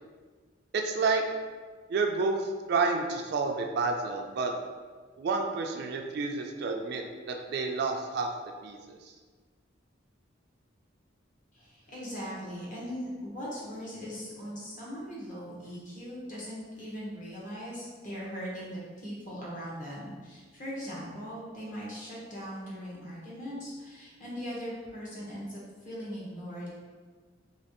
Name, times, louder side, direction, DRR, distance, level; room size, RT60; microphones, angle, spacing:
voice 1, 0.7-1.2 1.9-4.5 5.2-8.3 8.6-9.1, right 4 dB, 55° right, 3 dB, 0.3 m, -30 dB
voice 2, 11.5-26.7, equal, 45° left, -6 dB, 1.0 m, -40 dB
3.2 x 2.8 x 2.9 m, 1.5 s
head